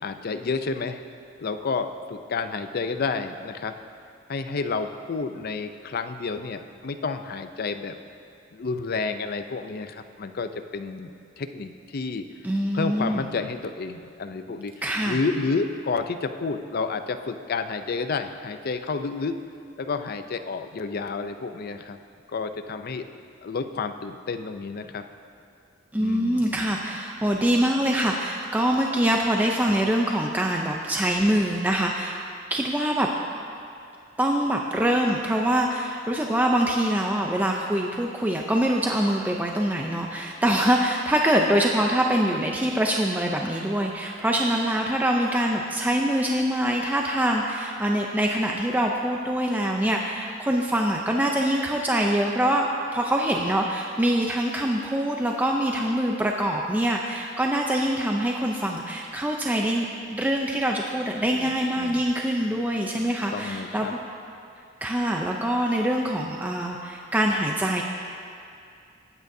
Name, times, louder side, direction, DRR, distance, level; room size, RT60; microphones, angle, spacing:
voice 1, 0.0-1.0 1.4-3.7 4.3-8.0 8.5-11.1 11.4-12.2 12.7-14.7 15.0-19.4 19.8-22.0 22.3-23.1 23.4-25.0 26.0-26.9 61.3-61.5 61.8-62.0 63.3-63.9, left 4 dB, 50° left, 8 dB, 0.5 m, -30 dB
voice 2, 12.4-13.3 14.8-15.2 25.9-32.2 32.5-33.1 34.2-52.7 52.9-59.9 60.1-64.0 64.8-67.8, right 1 dB, 10° right, 0 dB, 0.5 m, -24 dB
20.5 x 9.0 x 2.7 m, 2.5 s
head